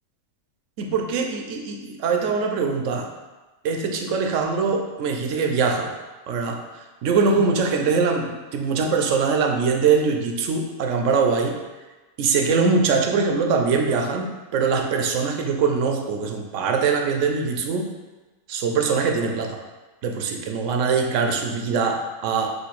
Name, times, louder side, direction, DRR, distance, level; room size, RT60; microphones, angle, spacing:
voice 1, 0.8-3.1 3.6-5.9 6.3-11.6 12.2-17.9 18.5-19.6 20.0-22.5, right 5 dB, 70° right, 3 dB, 0.9 m, -22 dB
4.9 x 2.7 x 4.1 m, 1.2 s
omnidirectional pair, 1.4 m